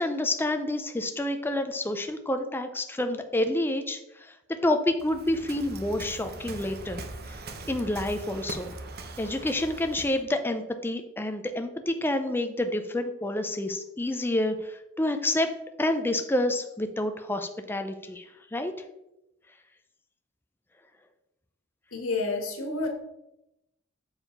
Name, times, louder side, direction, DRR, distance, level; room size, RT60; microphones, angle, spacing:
voice 1, 0.0-7.0 7.3-7.4 7.7-8.7 9.2-15.5 15.8-18.7, left 1 dB, 10° left, 7 dB, 0.5 m, -28 dB
Waves surf, 5.0-10.2, right 2 dB, 50° right, 0.9 m, -41 dB
voice 2, 21.9-22.9, left 3 dB, 85° left, 3 dB, 1.7 m, -29 dB
7.0 x 4.8 x 5.3 m, 0.89 s
head